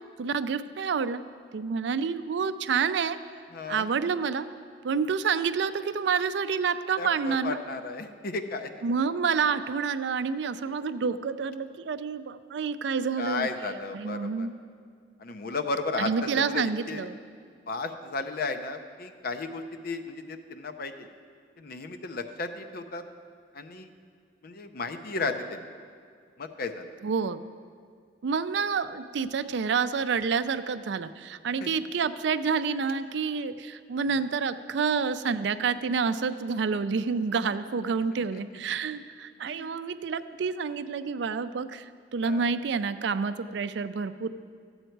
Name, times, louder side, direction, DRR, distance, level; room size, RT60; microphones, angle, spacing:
voice 1, 0.2-1.2 1.5-3.2 3.7-4.5 4.8-7.6 8.8-13.5 13.9-14.5 16.0-17.2 27.0-27.4 28.2-44.3, right 5 dB, 70° right, 12 dB, 0.4 m, -28 dB
voice 2, 3.5-3.9 7.0-8.7 10.7-10.8 13.2-14.5 15.2-17.1 17.7-21.1 21.6-23.0 23.5-23.9 24.4-25.7 26.4-26.9 31.6-31.7 38.3-38.4 39.5-39.8 42.2-42.4, left 3 dB, 55° left, 8 dB, 0.7 m, -34 dB
13.5 x 8.0 x 4.5 m, 2.2 s
head